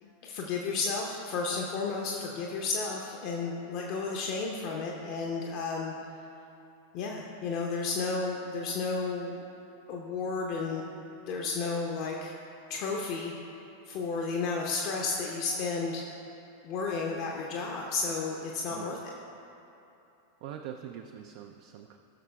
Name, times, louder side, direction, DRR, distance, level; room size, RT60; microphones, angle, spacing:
voice 1, 0.0-5.9 6.9-9.4 9.9-10.8 11.2-12.3 12.7-13.3 13.9-16.0 16.6-19.0, left 4 dB, 45° left, -1 dB, 0.7 m, -32 dB
voice 2, 20.4-22.0, right 9 dB, 50° right, 5 dB, 0.4 m, -43 dB
16.0 x 6.4 x 2.3 m, 2.8 s
figure-of-eight pair, 90°, 0 cm